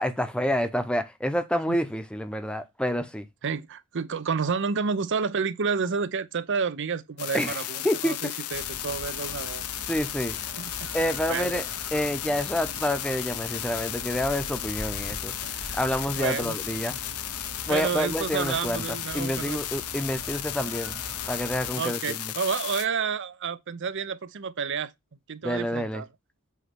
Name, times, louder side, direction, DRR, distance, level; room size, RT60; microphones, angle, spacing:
voice 1, 0.0-3.3 7.3-8.3 9.9-10.4 10.9-15.4 15.7-17.0 17.6-21.0 21.3-22.3 25.4-26.0, equal, 5° left, 0.7 m, -28 dB
voice 2, 3.4-9.6 10.6-11.5 15.1-15.8 16.2-16.6 17.7-19.6 21.8-24.9 25.3-26.1, right 5 dB, 55° right, 0.6 m, -30 dB
sound 1, 7.2-22.9, left 12 dB, 85° left, 0.6 m, -34 dB
sound 2, 8.5-21.7, right 1 dB, 85° right, 2.5 m, -43 dB
8.2 x 3.0 x 5.9 m
head